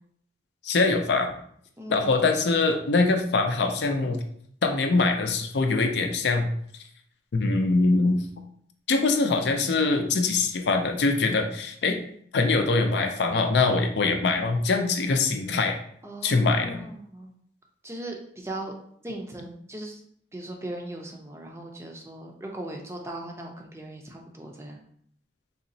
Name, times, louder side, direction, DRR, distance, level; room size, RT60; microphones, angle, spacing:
voice 1, 0.6-1.4 1.9-4.2 4.6-6.5 7.3-8.2 8.9-12.0 12.3-15.8 16.2-16.9, left 3 dB, 75° left, 5 dB, 0.5 m, -23 dB
voice 2, 1.8-2.1 16.0-17.3 17.8-18.7 19.0-20.0 20.3-24.8, right 1 dB, 15° right, 1 dB, 0.4 m, -38 dB
4.0 x 2.9 x 2.7 m, 0.65 s
head